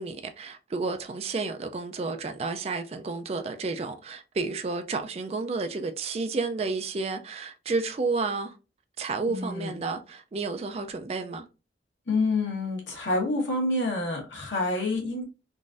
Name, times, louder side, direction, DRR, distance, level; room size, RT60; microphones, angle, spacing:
voice 1, 0.0-8.6 9.0-11.5, right 3 dB, 35° right, 0.3 m, -31 dB
voice 2, 9.3-9.8 12.1-15.2, left 2 dB, 85° left, 1.2 m, -28 dB
3.8 x 2.5 x 2.4 m
head